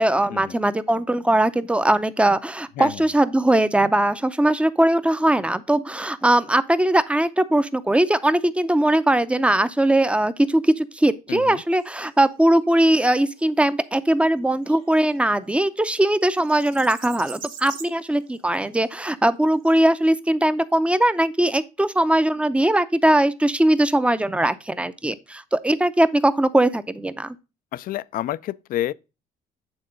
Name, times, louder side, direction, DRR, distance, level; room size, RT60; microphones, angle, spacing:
voice 1, 0.0-27.4, right 1 dB, 5° right, 0.5 m, -20 dB
voice 2, 11.3-11.6 27.7-28.9, left 13 dB, 55° left, 0.4 m, -29 dB
sound 1, 11.7-19.8, right 6 dB, 55° right, 1.7 m, -45 dB
8.9 x 3.7 x 5.1 m
cardioid pair, 110°, 17 cm